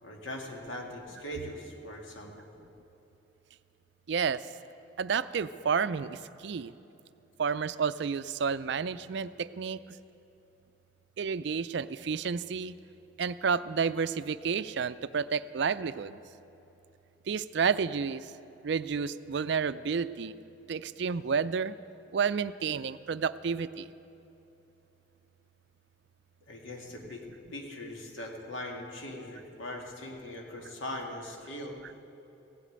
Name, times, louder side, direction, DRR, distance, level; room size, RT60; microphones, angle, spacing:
voice 1, 0.0-2.5 26.5-27.3 27.5-31.8, left 1 dB, 75° left, 1 dB, 2.0 m, -40 dB
voice 2, 4.1-4.5 5.0-6.7 7.4-9.8 11.2-12.7 13.2-16.2 17.3-18.3 18.6-20.3 20.7-21.8 22.1-23.9, right 6 dB, 60° right, 14 dB, 0.4 m, -30 dB
16.0 x 8.3 x 8.6 m, 3.0 s
head